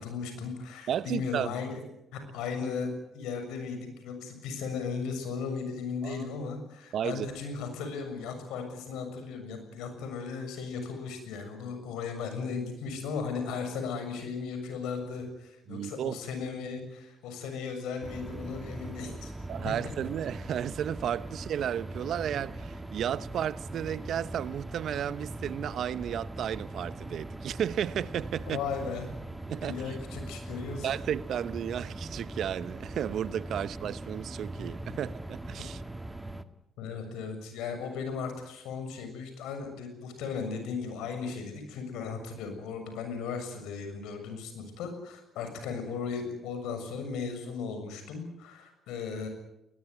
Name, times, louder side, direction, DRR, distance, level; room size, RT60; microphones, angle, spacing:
voice 1, 0.0-1.8 2.1-2.9 3.1-19.3 19.6-19.7 28.5-29.1 29.6-30.9 36.8-49.3, left 5 dB, 85° left, 6.9 m, -36 dB
voice 2, 0.9-1.5 6.0-6.3 6.9-7.3 15.7-16.2 19.5-28.6 29.5-29.9 30.8-35.8, right 9 dB, 65° right, 0.8 m, -33 dB
sound 1, 18.0-36.4, right 2 dB, 15° right, 1.7 m, -41 dB
21.5 x 20.5 x 9.6 m
cardioid pair, 80°, 0 cm